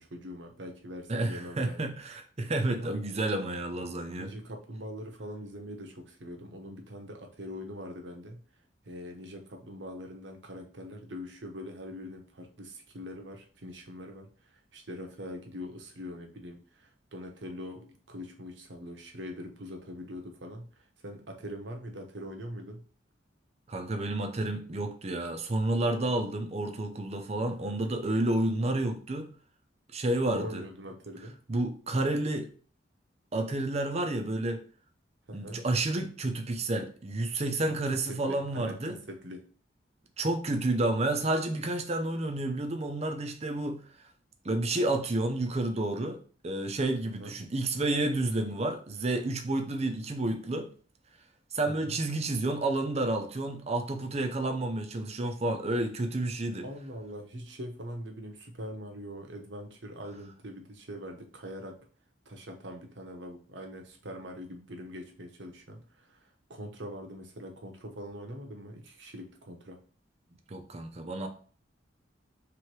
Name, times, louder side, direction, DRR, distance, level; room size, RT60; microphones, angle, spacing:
voice 1, 0.0-1.9 2.7-2.9 4.2-8.4 8.8-22.8 27.5-27.8 30.3-31.4 35.3-35.6 37.7-39.5 47.2-47.4 51.6-52.0 56.6-61.8 62.3-69.8, equal, 70° right, 1.0 m, -43 dB
voice 2, 1.1-4.3 23.7-29.3 29.9-30.6 31.5-32.5 33.3-34.6 35.3-39.0 40.2-43.8 44.4-46.2 46.4-50.7 51.5-56.7 70.5-71.3, right 2 dB, 35° right, 0.6 m, -30 dB
3.4 x 3.2 x 4.6 m
head